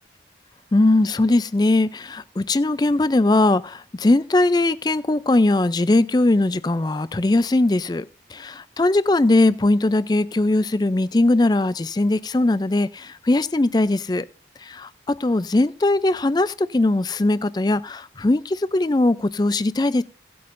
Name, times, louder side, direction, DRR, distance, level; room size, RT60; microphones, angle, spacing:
voice 1, 0.7-14.3 14.6-20.0, left 2 dB, 25° left, 0.4 m, -20 dB
17.0 x 8.5 x 2.6 m
head